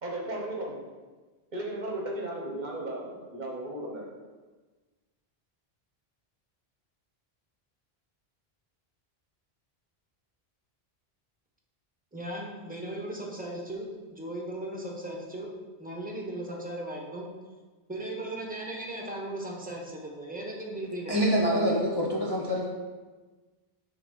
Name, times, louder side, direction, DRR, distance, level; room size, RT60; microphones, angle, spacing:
voice 1, 0.0-0.8 1.5-4.1, right 1 dB, 50° right, -1 dB, 1.0 m, -35 dB
voice 2, 12.1-17.3 17.9-21.1, right 1 dB, 10° right, -1 dB, 1.0 m, -37 dB
voice 3, 21.1-22.7, equal, 25° left, -4 dB, 0.7 m, -25 dB
5.9 x 3.6 x 5.3 m, 1.3 s
omnidirectional pair, 1.0 m